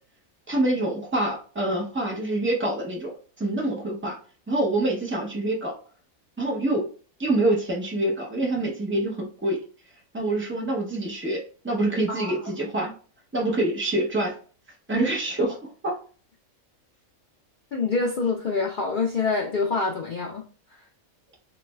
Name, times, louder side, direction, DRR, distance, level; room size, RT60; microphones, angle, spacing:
voice 1, 0.5-4.2 4.5-5.7 6.4-6.8 7.2-9.6 10.1-12.9 13.3-14.3 14.9-15.9, right 1 dB, 15° right, -1 dB, 0.4 m, -26 dB
voice 2, 17.7-20.4, left 4 dB, 75° left, 0 dB, 0.4 m, -26 dB
3.2 x 3.0 x 2.2 m, 0.40 s
omnidirectional pair, 1.5 m